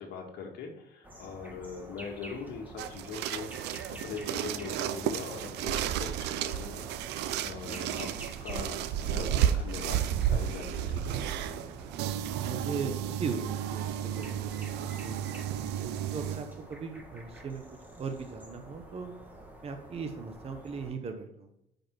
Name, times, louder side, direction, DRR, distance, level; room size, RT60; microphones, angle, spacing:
voice 1, 0.0-8.1 8.4-11.7, left 5 dB, 75° left, 2 dB, 1.7 m, -42 dB
sound 1, 1.0-20.9, right 1 dB, 10° right, 1.8 m, -49 dB
sound 2, 2.8-16.5, right 10 dB, 85° right, 0.6 m, -32 dB
voice 2, 12.4-17.6 18.0-19.1 19.6-21.5, right 5 dB, 35° right, 5 dB, 1.0 m, -39 dB
8.9 x 5.3 x 4.6 m, 0.81 s
cardioid pair, 110°, 17 cm